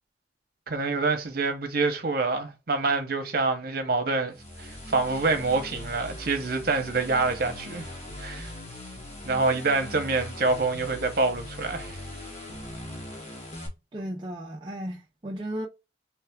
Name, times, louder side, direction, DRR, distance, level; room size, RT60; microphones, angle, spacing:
voice 1, 0.7-7.9 8.2-8.5 9.2-12.0, right 3 dB, 55° right, 0.9 m, -26 dB
sound 1, 4.3-13.7, left 1 dB, 35° left, 1.1 m, -40 dB
voice 2, 13.9-15.7, equal, 25° right, 0.4 m, -35 dB
3.4 x 3.2 x 3.4 m
head